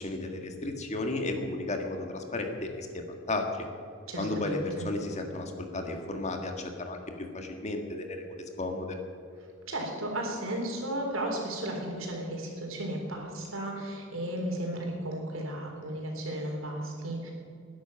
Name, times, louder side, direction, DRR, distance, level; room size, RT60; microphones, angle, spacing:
voice 1, 0.0-3.7 4.2-9.0, left 2 dB, 35° left, 4 dB, 1.7 m, -34 dB
voice 2, 4.1-4.9 9.7-17.3, right 1 dB, 80° right, 1 dB, 3.8 m, -34 dB
19.5 x 10.5 x 5.9 m, 2.5 s
head